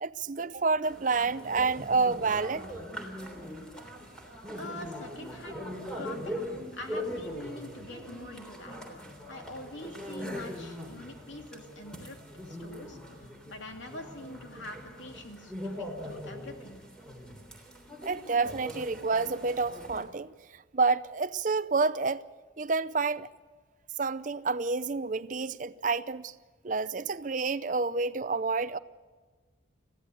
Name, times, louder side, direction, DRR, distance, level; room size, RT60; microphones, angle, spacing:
voice 1, 0.0-2.7 18.0-22.2 22.6-23.3 24.0-26.3 26.6-28.8, right 4 dB, 40° right, 0.5 m, -29 dB
sound 1, 0.8-20.0, equal, 5° left, 3.3 m, -41 dB
voice 2, 4.5-12.2 12.4-16.8, left 1 dB, 70° left, 2.7 m, -45 dB
21.5 x 15.0 x 7.9 m
head